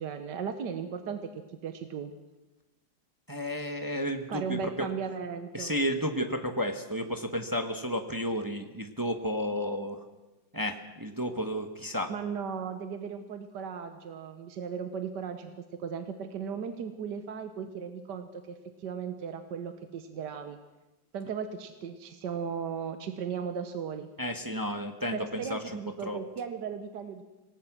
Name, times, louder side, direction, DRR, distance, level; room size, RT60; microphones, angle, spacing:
voice 1, 0.0-2.1 4.3-5.7 12.1-20.6 21.1-24.1 25.1-27.2, right 6 dB, 70° right, 8 dB, 1.6 m, -36 dB
voice 2, 3.3-4.9 5.5-10.0 10.5-12.1 24.2-25.6 26.0-26.2, equal, 15° right, 5 dB, 1.1 m, -32 dB
26.0 x 19.0 x 6.1 m, 1.1 s
omnidirectional pair, 2.0 m